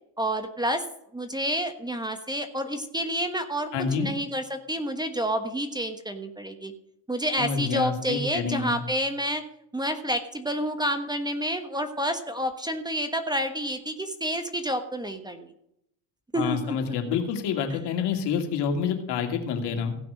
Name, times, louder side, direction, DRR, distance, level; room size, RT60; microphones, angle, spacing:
voice 1, 0.2-0.8 1.1-3.7 4.0-6.7 7.1-9.4 9.7-15.5 16.3-17.0 17.7-17.8, equal, 10° right, 8 dB, 1.2 m, -29 dB
voice 2, 3.7-4.1 7.4-8.8 16.3-20.0, left 6 dB, 65° left, 4 dB, 2.6 m, -28 dB
16.5 x 6.0 x 6.4 m, 0.77 s
supercardioid pair, 90°, 44 cm